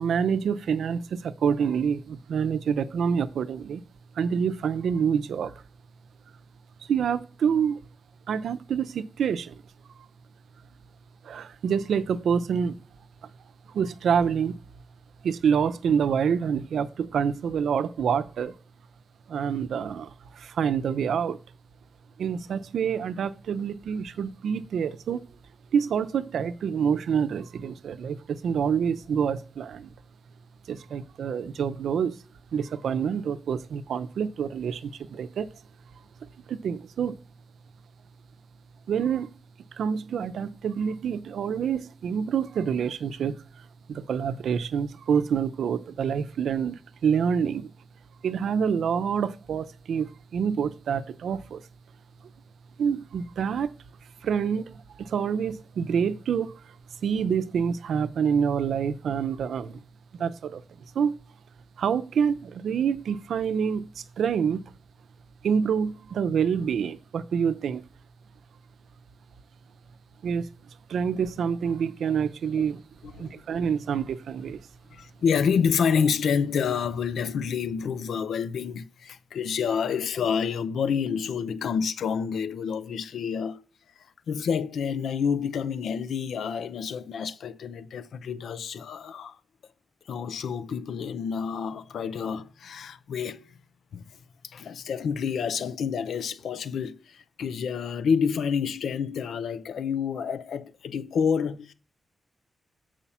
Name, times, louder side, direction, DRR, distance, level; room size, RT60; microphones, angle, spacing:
voice 1, 0.0-3.8 4.2-5.5 6.9-7.8 8.3-9.6 11.2-12.7 13.7-14.6 15.2-18.5 19.3-21.4 22.2-25.2 25.7-29.9 30.7-32.2 32.5-35.5 36.5-37.2 38.9-39.3 39.8-43.4 43.9-47.7 48.2-51.6 52.8-53.7 54.2-56.6 57.0-59.8 60.1-60.6 60.9-61.2 61.8-64.7 65.4-67.8 70.2-70.5 70.9-72.8 73.2-74.6, right 7 dB, 85° right, 0.6 m, -27 dB
voice 2, 73.0-73.6 74.9-83.6 84.3-89.4 90.1-93.5 93.9-94.1 94.4-101.7, left 6 dB, 90° left, 0.6 m, -28 dB
7.2 x 5.0 x 5.5 m
wide cardioid pair, 150°, 0 cm